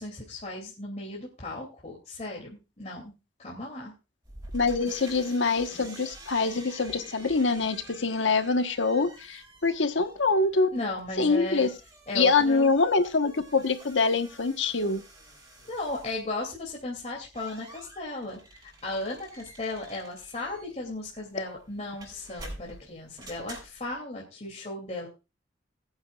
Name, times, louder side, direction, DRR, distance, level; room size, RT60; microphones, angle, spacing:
voice 1, 0.0-3.1 3.4-3.9 10.7-11.7 12.1-12.7 15.7-25.1, left 2 dB, 35° left, -2 dB, 2.8 m, -36 dB
sound 1, 4.2-24.0, right 1 dB, 20° right, 6.5 m, -49 dB
voice 2, 4.5-10.7 11.2-11.7 12.1-15.0, left 4 dB, 80° left, 8 dB, 1.3 m, -25 dB
21.0 x 8.9 x 2.4 m, 0.28 s
head